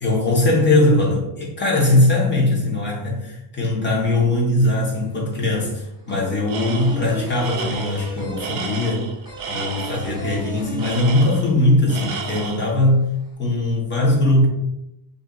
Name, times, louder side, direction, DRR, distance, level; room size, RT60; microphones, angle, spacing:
voice 1, 0.0-9.1 9.5-13.0 13.4-14.5, left 1 dB, 25° left, -3 dB, 0.9 m, -20 dB
sound 1, 5.2-11.8 12.0-12.1 12.5-13.3, equal, 10° right, 0.7 m, -35 dB
Tools, 6.5-7.1 7.4-10.1 10.8-11.6 11.9-12.7, right 5 dB, 65° right, 0.5 m, -32 dB
2.6 x 2.3 x 3.6 m, 0.84 s
cardioid pair, 140°, 48 cm